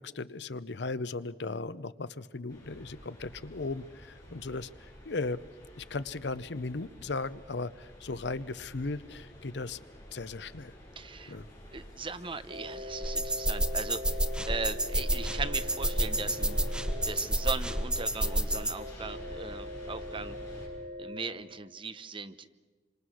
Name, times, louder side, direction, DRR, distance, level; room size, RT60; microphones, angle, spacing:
voice 1, 0.0-5.4 5.8-9.8 10.1-10.7 11.3-11.5, left 3 dB, 75° left, 15 dB, 0.8 m, -37 dB
sound 1, 2.5-20.7, equal, 20° left, 7.6 m, -48 dB
voice 2, 11.0-11.4 11.7-16.6 17.0-20.3 21.0-22.5, right 4 dB, 30° right, 11 dB, 0.9 m, -39 dB
sound 2, 12.5-21.2, left 1 dB, 65° right, 6.0 m, -42 dB
sound 3, 13.0-18.7, right 1 dB, 5° right, 1.0 m, -30 dB
28.0 x 25.5 x 6.4 m, 1.3 s
head